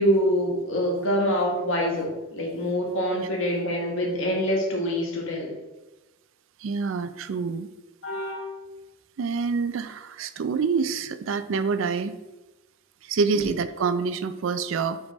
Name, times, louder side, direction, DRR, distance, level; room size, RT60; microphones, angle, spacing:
voice 1, 0.0-5.5 8.0-8.5 13.3-13.4, equal, 65° left, -1 dB, 1.5 m, -25 dB
voice 2, 6.6-7.7 9.2-12.2 13.0-15.0, right 5 dB, 65° right, 12 dB, 0.4 m, -26 dB
5.1 x 4.8 x 4.0 m, 1.1 s
head